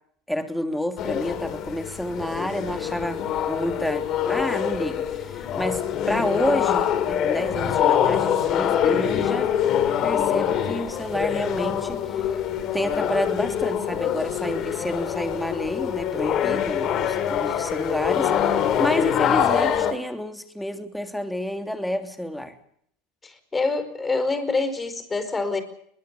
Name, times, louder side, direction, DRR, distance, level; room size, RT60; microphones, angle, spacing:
voice 1, 0.3-9.5 10.0-12.3 12.7-18.3 18.8-22.5, equal, ahead, 7 dB, 3.2 m, -29 dB
sound 1, 1.0-19.9, left 9 dB, 45° left, 3.1 m, -24 dB
voice 2, 23.2-25.6, left 3 dB, 20° left, 11 dB, 4.8 m, -26 dB
22.0 x 21.5 x 6.8 m, 0.68 s
hypercardioid pair, 100°, 0 cm